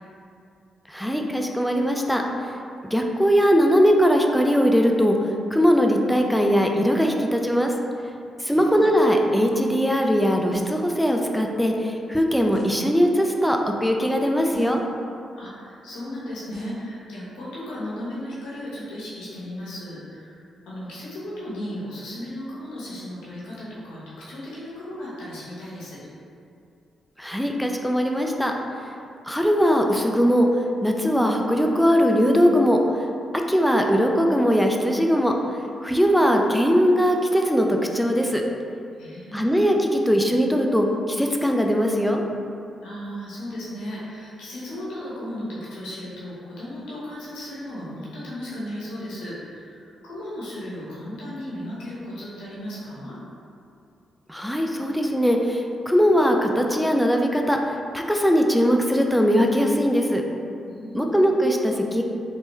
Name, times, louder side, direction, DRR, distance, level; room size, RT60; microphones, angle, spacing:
voice 1, 0.9-2.2 2.9-5.1 5.5-7.7 8.4-14.8 27.2-28.5 29.2-30.5 30.8-32.8 33.3-35.3 35.8-38.4 39.3-42.2 54.3-60.2 60.9-62.0, equal, ahead, 2 dB, 0.4 m, -20 dB
voice 2, 8.4-9.0 15.3-26.0 39.0-39.5 42.8-53.1 60.6-61.4, left 1 dB, 90° left, -8 dB, 0.9 m, -36 dB
sound 1, 10.5-10.9 12.5-12.9 14.5-14.9 16.5-16.9, left 1 dB, 35° right, 1.2 m, -40 dB
3.3 x 2.2 x 3.0 m, 2.5 s
supercardioid pair, 60°, 0 cm